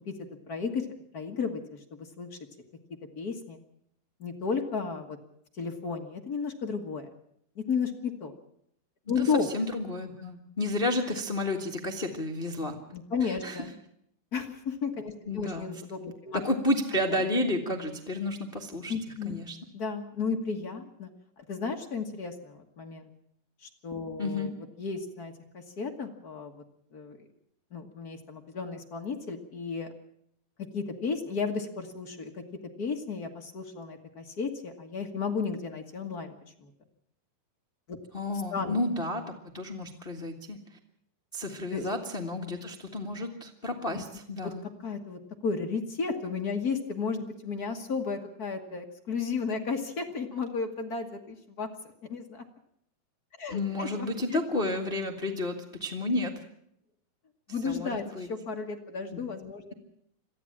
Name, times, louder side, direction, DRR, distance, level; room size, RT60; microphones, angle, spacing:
voice 1, 0.5-0.9 1.1-2.4 3.1-3.6 4.2-5.2 5.6-7.1 7.5-8.3 9.1-9.5 12.9-13.7 14.3-16.4 18.9-19.4 19.7-21.1 21.4-23.1 23.6-24.5 24.8-26.6 26.9-27.2 27.7-29.9 30.7-32.4 32.8-36.3 36.6-36.7 37.9-38.0 38.5-38.8 41.7-41.9 43.9-44.0 44.4-51.7 52.0-52.4 53.4-54.4 57.5-59.7, left 5 dB, 55° left, 3 dB, 1.0 m, -33 dB
voice 2, 9.5-12.8 13.2-13.7 15.3-15.7 16.4-18.9 19.2-19.6 24.2-24.5 38.1-40.6 41.3-44.7 53.5-56.4 57.6-58.3 59.1-59.2, left 1 dB, 85° left, 3 dB, 0.5 m, -31 dB
23.0 x 14.5 x 8.7 m, 0.72 s
omnidirectional pair, 4.2 m